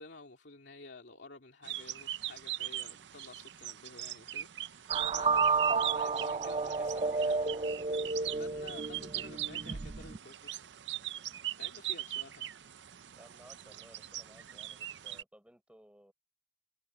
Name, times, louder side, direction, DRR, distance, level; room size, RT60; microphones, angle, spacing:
voice 1, 0.0-7.4 8.3-10.6 11.6-12.5, left 3 dB, 70° left, 2.7 m, -52 dB
sound 1, 1.6-15.2, right 13 dB, 70° right, 0.6 m, -40 dB
sound 2, 4.9-10.2, right 4 dB, 30° right, 0.4 m, -31 dB
voice 2, 13.2-16.1, equal, 5° right, 6.0 m, -59 dB
head